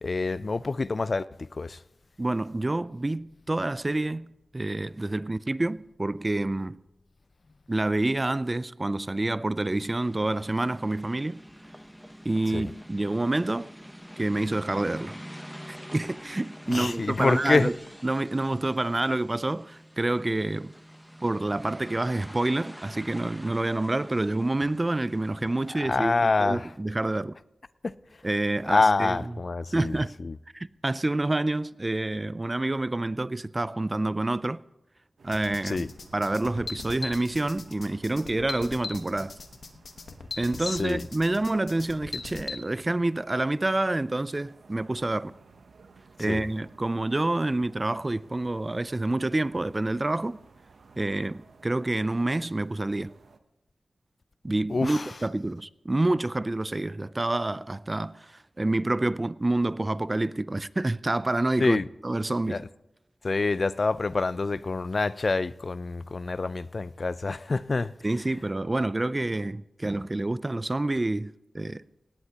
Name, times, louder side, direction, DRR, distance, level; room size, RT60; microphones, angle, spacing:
voice 1, 0.0-1.3 1.5-1.8 12.5-12.7 16.7-17.7 25.7-26.7 27.8-27.9 28.7-30.4 35.6-35.9 40.6-41.1 46.3-46.5 54.7-55.1 61.6-61.9 62.5-62.7 63.2-67.9, left 3 dB, 55° left, 0.4 m, -26 dB
voice 2, 2.2-6.8 7.7-11.4 12.2-13.7 14.2-15.2 15.9-17.7 18.0-20.7 21.2-27.4 28.2-29.2 29.7-30.1 30.5-34.6 35.2-35.8 36.1-39.3 40.4-45.3 46.2-50.4 51.0-53.1 54.4-62.6 68.0-71.8, right 2 dB, 30° right, 0.4 m, -28 dB
sound 1, 9.6-26.0, equal, ahead, 0.8 m, -46 dB
sound 2, 35.2-53.4, right 4 dB, 90° right, 0.8 m, -55 dB
sound 3, 35.3-42.6, left 4 dB, 80° left, 1.1 m, -39 dB
18.0 x 17.5 x 2.9 m
wide cardioid pair, 65°, 0 cm